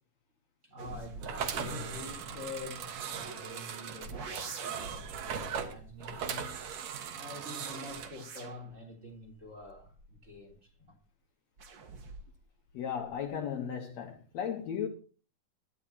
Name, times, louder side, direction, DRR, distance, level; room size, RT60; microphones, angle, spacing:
voice 1, 0.6-6.5 7.1-11.0, left 2 dB, 20° right, 3.5 m, -46 dB
sound 1, 0.8-3.5 4.0-7.1 7.7-10.7 11.6-12.5 12.8-13.4, right 3 dB, 80° right, 0.8 m, -47 dB
sound 2, 1.2-8.1, right 7 dB, 65° right, 2.4 m, -39 dB
voice 2, 12.7-14.9, left 8 dB, 65° left, 2.1 m, -35 dB
21.5 x 11.5 x 2.9 m
omnidirectional pair, 3.8 m